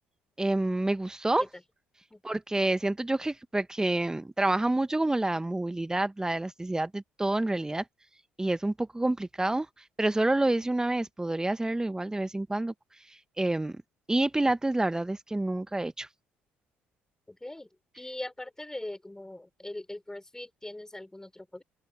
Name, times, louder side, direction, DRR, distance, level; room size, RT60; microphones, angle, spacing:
voice 1, 0.4-1.4 2.2-7.8 8.4-9.7 10.0-12.7 13.1-13.8 14.1-16.1, right 2 dB, 15° right, 1.5 m, -28 dB
voice 2, 17.3-17.7 17.9-21.6, left 1 dB, 10° left, 6.5 m, -41 dB
open air
hypercardioid pair, 55°, 5 cm